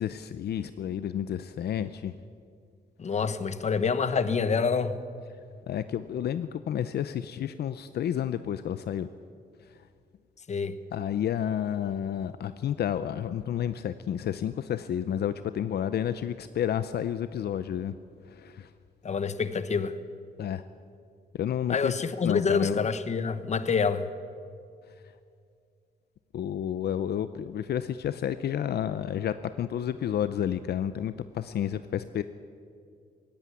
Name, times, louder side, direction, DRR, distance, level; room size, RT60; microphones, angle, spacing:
voice 1, 0.0-2.1 5.7-9.1 10.9-17.9 18.2-18.7 20.4-20.6 21.3-21.9 22.2-22.9 26.3-32.2, left 9 dB, 70° left, 12 dB, 0.6 m, -30 dB
voice 2, 3.0-5.0 10.5-10.7 19.0-19.9 21.7-24.1, left 5 dB, 40° left, 13 dB, 1.1 m, -27 dB
17.5 x 16.0 x 9.5 m, 2.3 s
cardioid pair, 110°, 17 cm